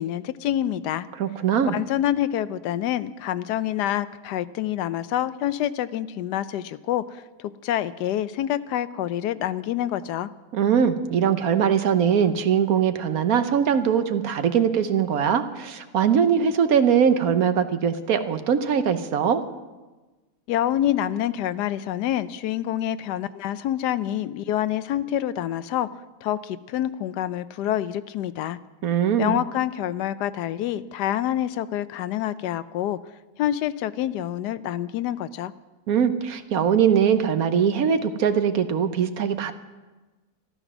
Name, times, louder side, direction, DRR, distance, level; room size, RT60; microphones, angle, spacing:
voice 1, 0.0-1.1 1.6-10.3 20.5-25.9 26.2-28.6 29.2-33.0 33.4-35.5, left 11 dB, 85° left, 14 dB, 1.2 m, -27 dB
voice 2, 1.2-1.7 10.5-19.4 28.8-29.4 35.9-39.5, right 7 dB, 65° right, 9 dB, 1.3 m, -21 dB
13.5 x 13.0 x 6.1 m, 1.2 s
omnidirectional pair, 1.7 m